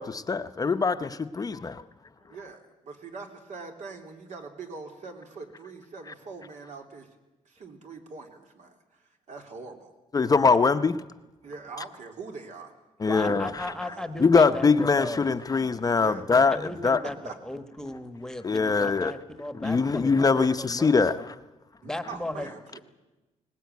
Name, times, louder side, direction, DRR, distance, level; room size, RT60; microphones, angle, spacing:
voice 1, 0.0-1.8 10.1-11.0 13.0-13.7 14.2-17.0 18.4-19.2 19.6-21.3, left 4 dB, 30° left, 0.7 m, -23 dB
voice 2, 2.2-7.1 7.4-8.8 9.3-9.9 11.4-12.7 13.0-14.1 16.0-16.3 17.2-17.3 17.9-18.0 20.3-20.5 21.8-22.8, right 4 dB, 70° right, 3.3 m, -42 dB
voice 3, 13.0-15.3 16.3-20.9 21.8-22.5, left 1 dB, 5° left, 1.2 m, -36 dB
21.5 x 19.0 x 9.4 m
wide cardioid pair, 140°, 13 cm